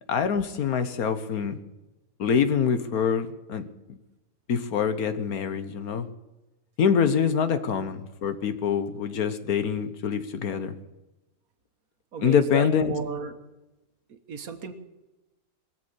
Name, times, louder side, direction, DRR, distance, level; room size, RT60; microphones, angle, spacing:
voice 1, 0.1-1.6 2.2-4.0 4.5-6.1 6.8-10.7 12.2-12.9, left 7 dB, 80° left, 10 dB, 1.6 m, -25 dB
voice 2, 12.1-13.3 14.1-14.7, right 5 dB, 80° right, 8 dB, 1.7 m, -34 dB
21.5 x 7.7 x 8.7 m, 1.0 s
omnidirectional pair, 1.5 m